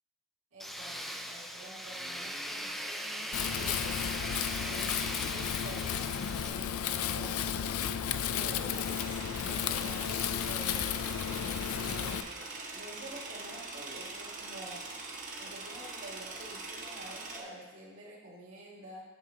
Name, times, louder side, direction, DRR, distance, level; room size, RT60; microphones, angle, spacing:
voice 1, 0.5-4.0 4.6-6.1 6.4-8.9 9.4-11.0 11.7-12.5 12.7-14.8 15.4-19.0, right 1 dB, 70° right, -6 dB, 1.9 m, -48 dB
Tools, 0.6-6.5, equal, ahead, 0.3 m, -39 dB
Wind, 3.3-12.2, left 8 dB, 80° left, 0.4 m, -33 dB
sound 1, 8.7-17.4, right 3 dB, 35° right, 0.9 m, -43 dB
11.0 x 5.9 x 2.8 m, 1.2 s
head